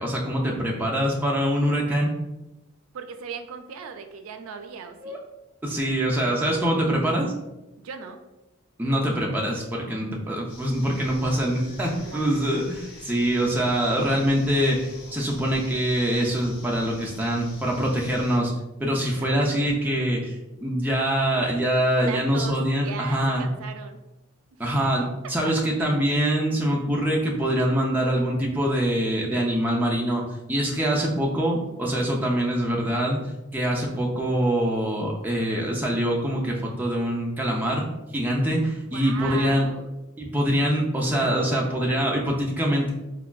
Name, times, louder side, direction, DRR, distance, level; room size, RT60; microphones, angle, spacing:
voice 1, 0.0-2.1 5.0-5.2 5.6-7.3 8.8-18.5 18.8-23.5 24.6-33.2 33.5-37.9 38.1-39.7 40.2-42.9, equal, 10° right, -2 dB, 0.4 m, -24 dB
voice 2, 2.9-5.2 7.8-8.2 12.0-12.6 19.2-19.3 22.0-22.6 22.8-24.0 25.4-25.5 25.8-26.0 38.9-39.9, right 6 dB, 85° right, 6 dB, 0.3 m, -37 dB
sound 1, 10.5-18.4, left 2 dB, 45° left, 0.5 m, -45 dB
3.5 x 2.2 x 2.3 m, 0.98 s
head